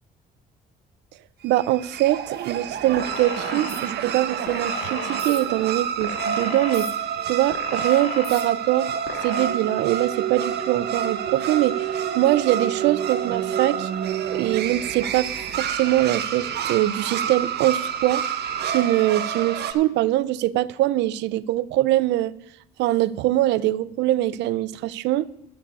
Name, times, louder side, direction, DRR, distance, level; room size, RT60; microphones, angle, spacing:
voice 1, 1.4-7.0 7.3-13.9 14.3-18.3 18.6-22.3 22.8-25.3, right 15 dB, 90° right, 0.5 m, -23 dB
sound 1, 1.5-19.7, right 8 dB, 70° right, 1.1 m, -28 dB
sound 2, 3.0-3.8 4.5-5.4 6.0-6.9 7.5-8.4 9.1-9.5, left 7 dB, 75° left, 1.7 m, -35 dB
12.5 x 4.9 x 8.4 m
cardioid pair, 100°, 18 cm